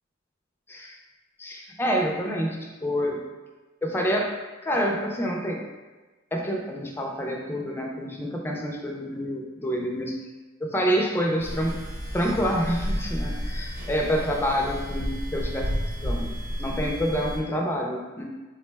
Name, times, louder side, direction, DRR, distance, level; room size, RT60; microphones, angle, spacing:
voice 1, 1.4-3.2 3.8-4.3 4.6-5.6 6.3-10.2 10.6-11.8 12.1-15.7 16.0-16.3 16.6-18.2, equal, 10° left, 0 dB, 0.3 m, -27 dB
sound 1, 11.4-17.4, equal, 80° right, 0.9 m, -31 dB
3.5 x 2.1 x 3.2 m, 1.2 s
head